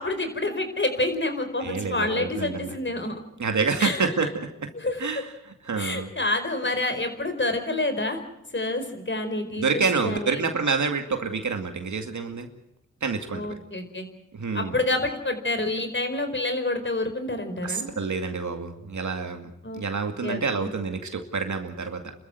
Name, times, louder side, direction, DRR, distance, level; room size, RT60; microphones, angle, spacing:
voice 1, 0.0-3.2 3.8-4.3 4.7-5.0 5.8-8.2 8.5-10.4 13.3-14.1 14.5-17.9 19.6-19.8 20.2-20.7, left 2 dB, 40° left, 7 dB, 4.9 m, -28 dB
voice 2, 1.6-2.7 3.4-4.7 5.0-6.1 9.6-12.5 13.0-13.6 14.3-14.8 17.6-22.1, right 5 dB, 75° right, 5 dB, 2.3 m, -28 dB
30.0 x 14.0 x 7.9 m, 0.86 s
cardioid pair, 50°, 30 cm